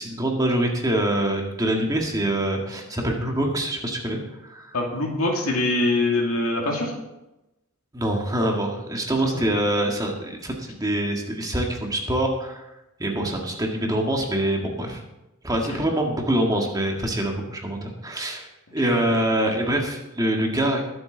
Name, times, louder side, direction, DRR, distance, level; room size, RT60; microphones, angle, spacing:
voice 1, 0.0-4.8 7.9-12.7 13.0-15.0 15.4-20.8, right 1 dB, 15° right, 1 dB, 1.8 m, -25 dB
voice 2, 4.7-6.9 15.7-15.8 18.8-19.0, left 2 dB, 85° left, 0 dB, 2.3 m, -23 dB
21.5 x 7.8 x 4.0 m, 0.95 s
head